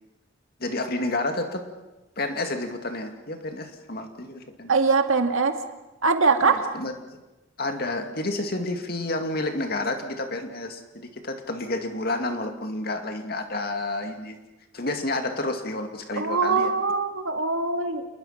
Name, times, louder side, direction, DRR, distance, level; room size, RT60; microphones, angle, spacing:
voice 1, 0.6-1.6 2.2-4.7 6.4-6.9 7.6-14.4 14.7-16.7, left 2 dB, 50° left, 6 dB, 2.2 m, -30 dB
voice 2, 4.7-5.5 6.0-6.7 16.2-18.1, right 4 dB, 85° right, 6 dB, 2.0 m, -22 dB
28.0 x 20.5 x 5.8 m, 1.1 s
head